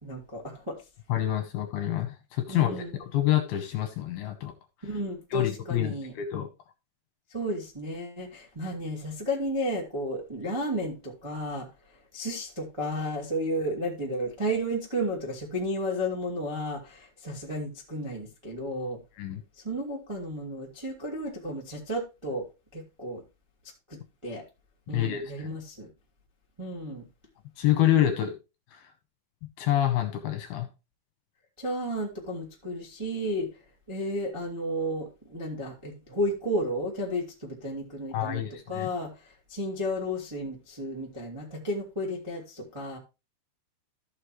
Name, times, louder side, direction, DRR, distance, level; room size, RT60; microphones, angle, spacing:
voice 1, 0.0-0.8 2.5-3.0 4.8-6.1 7.3-11.7 12.1-19.0 19.6-22.5 22.7-23.2 23.9-24.4 24.9-25.9 26.6-27.0 31.6-33.5 33.9-43.0, equal, 10° right, 1.3 m, -33 dB
voice 2, 1.1-2.8 3.1-4.5 5.3-6.5 19.2-19.4 24.9-25.5 27.6-28.3 29.6-30.7 38.1-38.9, left 12 dB, 70° left, 2.7 m, -27 dB
14.0 x 6.6 x 3.1 m
omnidirectional pair, 5.3 m